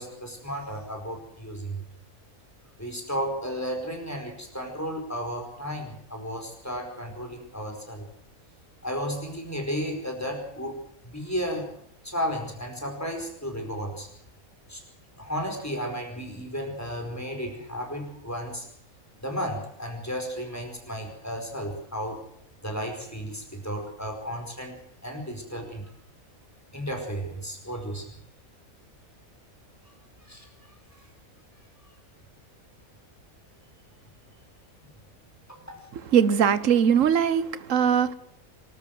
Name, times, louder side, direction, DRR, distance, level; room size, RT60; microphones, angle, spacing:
voice 1, 0.0-1.8 2.8-8.1 8.8-10.8 11.0-11.7 12.0-14.1 14.7-14.8 15.2-18.7 19.2-22.2 22.6-25.9 26.7-28.1 30.2-30.5 35.5-35.9, equal, 10° left, 3 dB, 4.9 m, -33 dB
voice 2, 35.9-38.1, right 8 dB, 65° right, 14 dB, 1.4 m, -21 dB
25.5 x 13.0 x 7.8 m, 0.68 s
omnidirectional pair, 1.5 m